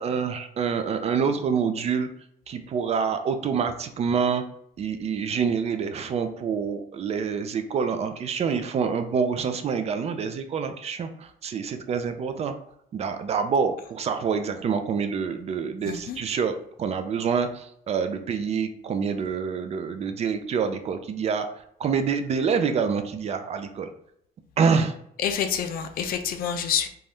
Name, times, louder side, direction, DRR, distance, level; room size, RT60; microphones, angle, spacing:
voice 1, 0.0-2.1 2.5-4.4 4.8-12.5 12.9-21.5 21.8-23.9 24.6-24.9, right 6 dB, 40° right, 8 dB, 0.4 m, -26 dB
voice 2, 15.9-16.2 25.2-26.9, left 8 dB, 60° left, 8 dB, 0.4 m, -27 dB
2.6 x 2.3 x 3.3 m, 0.71 s
cardioid pair, 110°, 17 cm